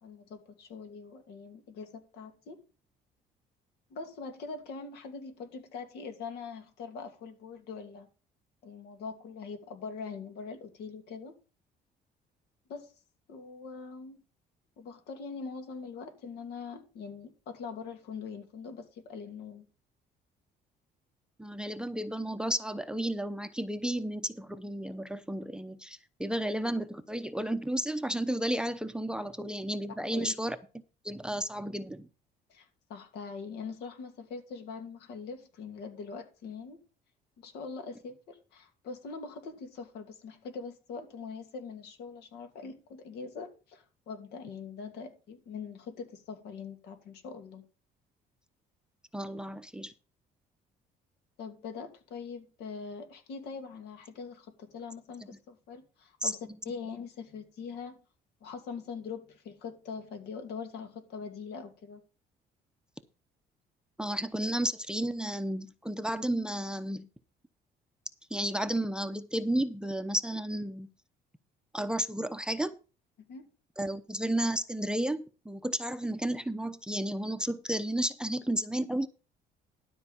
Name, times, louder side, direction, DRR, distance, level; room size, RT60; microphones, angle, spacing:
voice 1, 0.0-2.6 3.9-8.1 8.6-11.4 12.7-12.9 13.3-14.2 14.8-19.7 30.1-30.3 32.5-36.8 37.4-47.6 51.4-58.0 58.4-62.0 73.3-73.5, left 5 dB, 75° left, 2.6 m, -42 dB
voice 2, 21.4-30.6 31.0-32.1 49.1-49.9 56.2-56.3 64.0-67.1 68.3-70.9 71.7-72.8 73.8-79.1, right 1 dB, 5° right, 0.7 m, -32 dB
12.5 x 4.7 x 7.0 m
cardioid pair, 110°, 17 cm